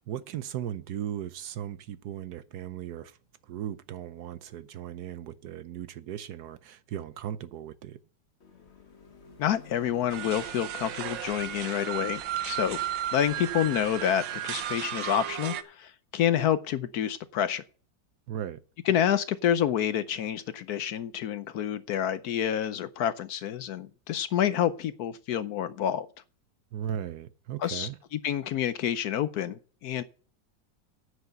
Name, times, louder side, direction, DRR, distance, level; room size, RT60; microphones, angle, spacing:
voice 1, 0.0-3.2 3.4-8.0 18.3-18.6 26.7-28.0, right 10 dB, 70° right, 1.1 m, -37 dB
sound 1, 8.4-14.2, left 4 dB, 40° left, 1.5 m, -54 dB
voice 2, 9.4-12.8 13.1-17.6 18.9-26.1 27.6-27.9 28.2-30.0, left 10 dB, 65° left, 1.0 m, -28 dB
sound 2, 10.1-15.6, right 11 dB, 85° right, 1.5 m, -34 dB
9.6 x 6.4 x 7.8 m
omnidirectional pair, 1.9 m